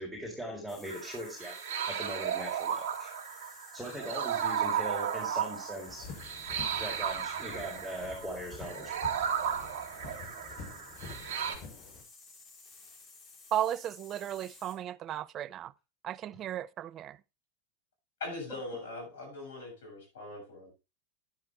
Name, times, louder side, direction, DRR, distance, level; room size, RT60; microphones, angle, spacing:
voice 1, 0.0-1.5 1.9-3.1 3.7-6.1 6.8-8.9, equal, ahead, 4.7 m, -40 dB
sound 1, 0.7-14.8, left 4 dB, 35° left, 5.0 m, -54 dB
sound 2, 0.9-11.6, right 8 dB, 65° right, 2.4 m, -35 dB
sound 3, 5.9-12.0, left 5 dB, 50° left, 4.9 m, -48 dB
voice 2, 13.5-15.7 16.0-17.2, right 11 dB, 40° right, 0.5 m, -35 dB
voice 3, 18.2-20.7, left 2 dB, 75° left, 7.6 m, -41 dB
10.5 x 10.5 x 3.6 m
hypercardioid pair, 95°, 0 cm